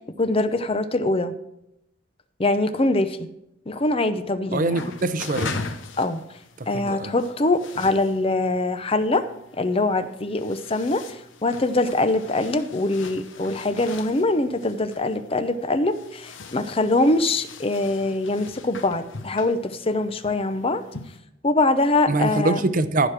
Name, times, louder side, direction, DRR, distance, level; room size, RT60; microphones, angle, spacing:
voice 1, 0.2-1.3 2.4-3.2 3.7-4.9 6.0-6.2 6.7-9.2 9.6-11.0 11.4-20.8 21.4-22.6, left 2 dB, 30° left, 11 dB, 0.6 m, -23 dB
voice 2, 4.5-5.5 6.7-7.1 22.1-23.1, right 2 dB, 40° right, 12 dB, 0.6 m, -23 dB
sound 1, 4.7-21.2, left 3 dB, 75° left, 0.9 m, -40 dB
15.0 x 5.0 x 6.1 m, 0.84 s
head